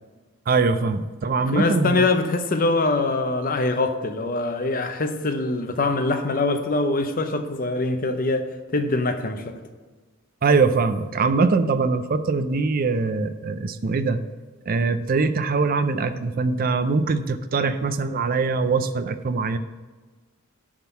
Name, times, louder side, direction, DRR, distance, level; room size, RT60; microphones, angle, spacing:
voice 1, 0.5-2.0 10.4-14.2 14.7-19.6, right 4 dB, 40° right, 11 dB, 0.4 m, -22 dB
voice 2, 1.4-9.5, left 2 dB, 40° left, 7 dB, 0.7 m, -23 dB
10.0 x 3.7 x 6.9 m, 1.3 s
head